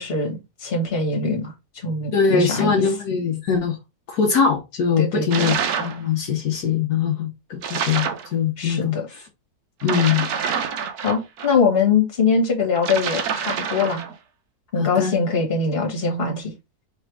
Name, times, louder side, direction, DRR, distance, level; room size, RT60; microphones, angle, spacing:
voice 1, 0.0-2.8 5.0-5.5 8.6-9.1 11.0-14.0 14.7-16.5, left 4 dB, 35° left, 1.6 m, -22 dB
voice 2, 2.1-3.8 4.1-9.2 9.8-10.3 14.8-15.1, left 6 dB, 70° left, 1.3 m, -22 dB
sound 1, 5.3-6.0 7.6-8.3 9.8-11.5 12.8-14.1, right 7 dB, 70° right, 1.2 m, -26 dB
3.4 x 3.3 x 4.5 m
omnidirectional pair, 1.8 m